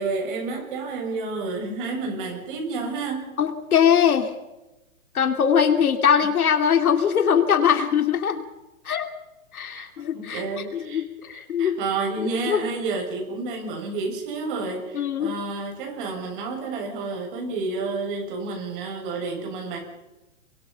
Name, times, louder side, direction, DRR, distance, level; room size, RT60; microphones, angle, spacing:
voice 1, 0.0-3.3 9.7-9.9 10.1-11.0 11.3-19.8, right 3 dB, 35° right, 2 dB, 7.7 m, -30 dB
voice 2, 3.4-4.3 5.1-8.4 8.8-9.1 9.5-10.4 10.7-11.8 12.2-12.6 14.9-15.3, left 8 dB, 85° left, 7 dB, 2.8 m, -21 dB
28.5 x 24.0 x 5.8 m, 1.0 s
hypercardioid pair, 160°, 43 cm